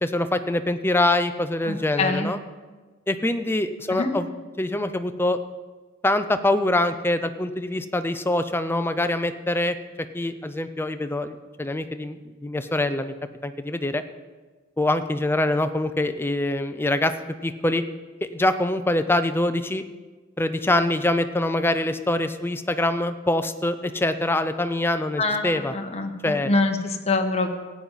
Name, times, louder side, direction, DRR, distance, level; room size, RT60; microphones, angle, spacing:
voice 1, 0.0-2.4 3.1-4.3 4.6-5.4 6.0-9.8 10.1-13.1 13.4-14.0 14.8-17.1 17.4-17.8 18.2-19.8 20.4-25.7 26.2-26.5, left 1 dB, 10° left, 10 dB, 0.5 m, -24 dB
voice 2, 1.6-2.3 3.9-4.2 25.2-27.5, left 3 dB, 30° left, 4 dB, 1.1 m, -25 dB
15.5 x 9.5 x 4.1 m, 1.3 s
head